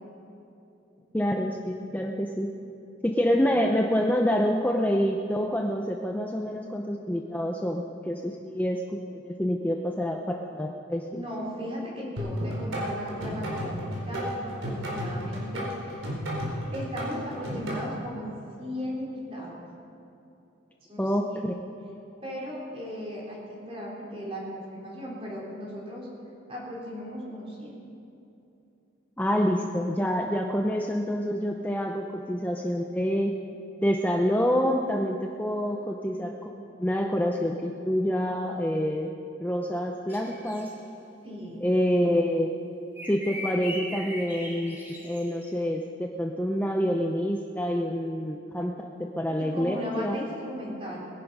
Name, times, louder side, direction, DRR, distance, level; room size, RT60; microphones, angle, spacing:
voice 1, 1.1-2.5 3.0-11.2 21.0-21.6 29.2-33.3 33.8-39.1 39.4-40.7 41.6-42.5 43.1-50.2, equal, 10° left, 1 dB, 0.6 m, -27 dB
voice 2, 11.1-16.1 16.7-19.6 20.9-21.4 22.2-26.1 26.5-27.8 41.2-41.6 49.4-51.1, equal, 30° right, -4 dB, 3.9 m, -37 dB
sound 1, 12.2-17.8, equal, 90° right, 4.3 m, -32 dB
sound 2, 40.1-40.7 43.0-45.4, left 1 dB, 10° right, 2.4 m, -39 dB
21.0 x 11.0 x 5.4 m, 2.9 s
head